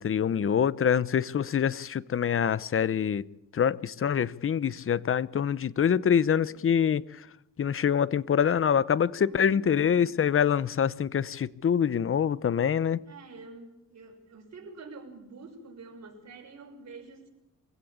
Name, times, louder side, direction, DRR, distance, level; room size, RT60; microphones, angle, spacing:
voice 1, 0.0-3.2 3.5-7.0 7.6-13.0, left 8 dB, 40° left, 0.8 m, -25 dB
voice 2, 9.3-10.1 13.0-17.3, right 3 dB, 55° right, 6.3 m, -47 dB
24.5 x 16.5 x 8.6 m
cardioid pair, 105°, 32 cm